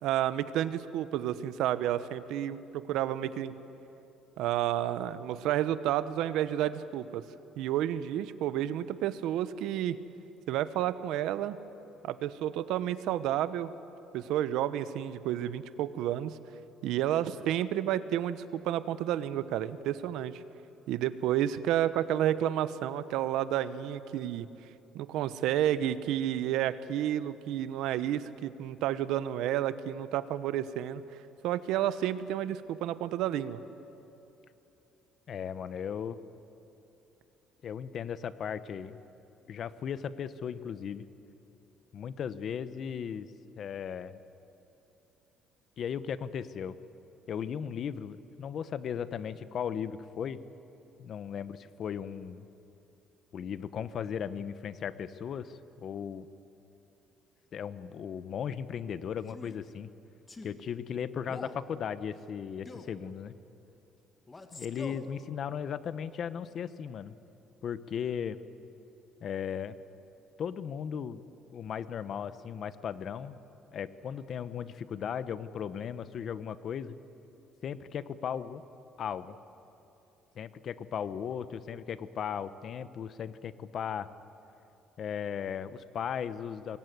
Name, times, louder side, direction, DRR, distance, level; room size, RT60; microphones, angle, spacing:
voice 1, 0.0-3.5 4.4-7.2 7.6-10.0 10.5-11.6 12.0-13.7 14.1-16.4 16.8-20.4 20.9-24.5 24.9-31.0 31.4-33.6, right 11 dB, 75° right, 14 dB, 1.0 m, -30 dB
voice 2, 35.3-36.2 37.6-39.0 39.5-41.1 41.9-44.2 45.8-46.7 47.3-50.4 51.0-52.4 53.3-56.3 57.5-59.9 60.4-63.3 64.5-67.2 67.6-68.4 69.2-69.7 70.4-71.2 71.5-73.4 73.7-77.0 77.6-78.6 79.0-79.4 80.3-84.1 85.0-86.8, left 8 dB, 45° left, 14 dB, 0.9 m, -36 dB
Male speech man speaking, 59.2-59.6 60.3-60.6 61.2-61.6 62.7-63.0 64.3-65.1, left 3 dB, 15° left, 1.8 m, -45 dB
25.0 x 21.5 x 9.5 m, 2.9 s
cardioid pair, 150°, 0 cm